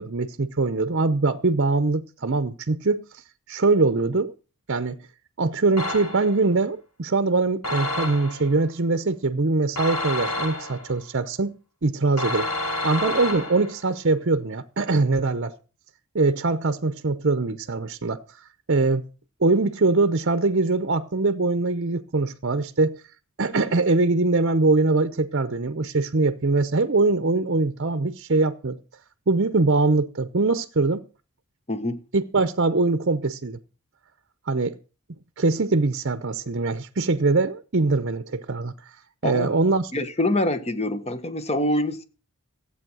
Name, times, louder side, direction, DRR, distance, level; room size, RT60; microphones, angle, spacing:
voice 1, 0.0-3.2 3.5-4.3 4.7-5.0 5.4-12.5 12.8-15.5 16.1-18.2 18.7-19.1 19.4-23.0 23.4-28.8 29.3-31.0 32.1-33.6 34.5-34.8 35.4-38.7 39.2-39.9, right 3 dB, 50° right, 0.8 m, -22 dB
sound 1, 5.8-6.4 7.6-8.5 9.8-11.0 12.2-13.8, left 1 dB, 80° left, 6.5 m, -29 dB
voice 2, 31.7-32.0 39.2-39.5 39.9-42.0, left 1 dB, 30° left, 1.3 m, -25 dB
15.0 x 8.6 x 6.2 m
head